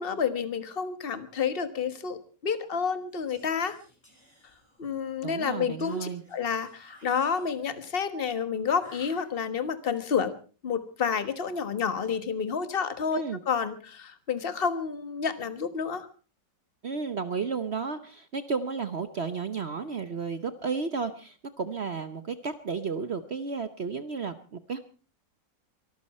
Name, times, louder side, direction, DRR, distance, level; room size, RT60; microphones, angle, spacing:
voice 1, 0.0-3.8 4.8-10.3 10.6-16.1, left 6 dB, 35° left, 11 dB, 1.5 m, -30 dB
Whispering, 3.1-5.0 5.8-7.8 8.7-9.8, equal, 15° left, 4.6 m, -57 dB
voice 2, 5.2-6.2 13.1-13.4 16.8-24.8, right 5 dB, 45° right, 11 dB, 1.0 m, -33 dB
24.0 x 14.0 x 4.3 m, 0.37 s
omnidirectional pair, 1.9 m